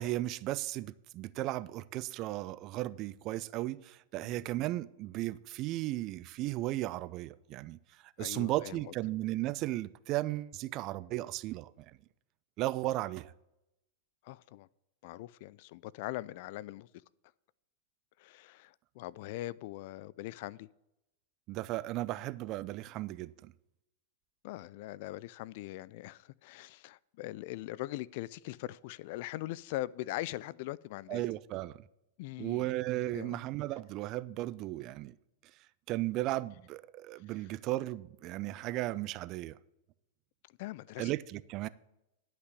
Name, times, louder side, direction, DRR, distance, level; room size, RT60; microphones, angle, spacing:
voice 1, 0.0-7.8 8.2-11.9 12.6-13.3 21.5-23.5 31.1-31.8 32.4-35.1 35.9-39.6 41.0-41.7, right 16 dB, 45° right, 0.5 m, -35 dB
voice 2, 8.2-8.9 14.2-14.7 15.0-16.9 18.2-20.7 24.4-31.2 32.2-32.7 33.1-33.4 40.6-41.1, left 17 dB, 55° left, 0.4 m, -41 dB
11.0 x 6.0 x 8.3 m
hypercardioid pair, 100°, 0 cm